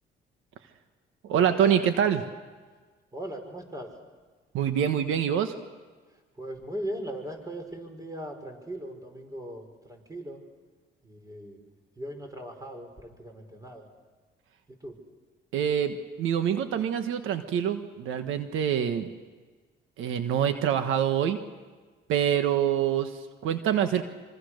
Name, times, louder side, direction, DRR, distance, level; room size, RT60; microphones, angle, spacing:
voice 1, 1.2-2.2 4.5-5.5 15.5-19.1 20.0-21.4 22.1-24.0, right 9 dB, 85° right, 8 dB, 1.4 m, -25 dB
voice 2, 3.1-3.9 6.3-10.4 11.0-11.6 12.0-13.9 14.8-15.0, right 1 dB, 15° right, 4 dB, 5.8 m, -39 dB
26.0 x 25.5 x 6.6 m, 1.4 s
cardioid pair, 90°, 20 cm